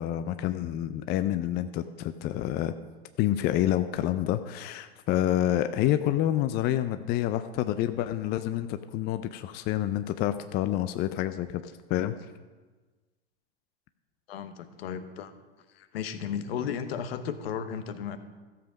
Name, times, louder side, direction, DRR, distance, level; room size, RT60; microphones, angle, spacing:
voice 1, 0.0-2.7 3.2-12.1, left 12 dB, 30° left, 10 dB, 0.4 m, -28 dB
voice 2, 14.3-15.3 15.7-18.2, left 8 dB, 65° left, 10 dB, 1.1 m, -34 dB
13.5 x 7.4 x 5.1 m, 1.3 s
hypercardioid pair, 110°, 32 cm